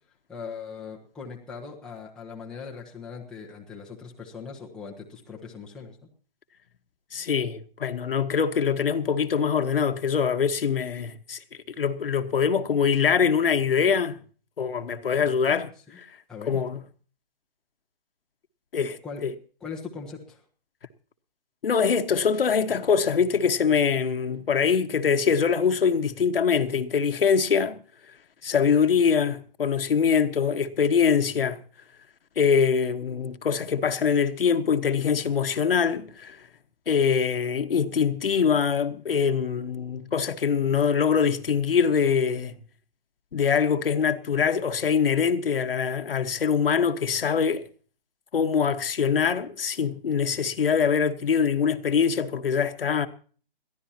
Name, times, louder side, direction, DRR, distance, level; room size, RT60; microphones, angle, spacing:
voice 1, 0.3-6.0 15.9-16.0 16.3-16.6 19.0-19.2 19.6-20.4, left 5 dB, ahead, 1.1 m, -40 dB
voice 2, 7.1-11.4 11.8-14.2 14.6-15.7 16.0-16.1 16.5-16.8 18.7-19.3 21.6-27.8 28.4-31.6 32.4-36.4 36.9-42.5 43.3-47.6 48.3-53.1, left 6 dB, 70° left, 1.4 m, -23 dB
21.5 x 14.5 x 2.9 m
hypercardioid pair, 160°, 29 cm